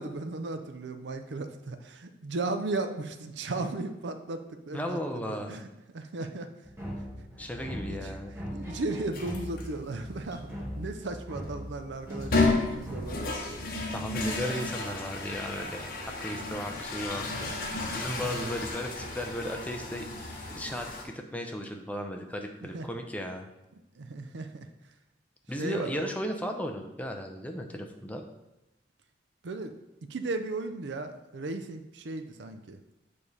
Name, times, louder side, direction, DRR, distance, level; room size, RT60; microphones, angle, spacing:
voice 1, 0.0-5.0 5.3-5.7 5.9-6.5 7.9-8.1 8.4-10.5 10.8-13.4 18.2-18.5 22.6-22.9 24.0-24.7 25.6-26.0 29.4-29.7 30.1-32.8, right 2 dB, 75° right, 8 dB, 0.5 m, -36 dB
voice 2, 4.7-5.6 7.4-8.3 13.9-15.9 16.2-17.6 17.9-20.1 20.5-23.5 25.5-28.2, equal, 10° left, 3 dB, 0.6 m, -35 dB
sound 1, 6.7-14.1, equal, 15° right, 1.2 m, -40 dB
sound 2, 9.1-9.6 10.3-10.4 12.1-21.0, left 3 dB, 55° left, 1.0 m, -32 dB
7.0 x 3.3 x 5.5 m, 0.95 s
head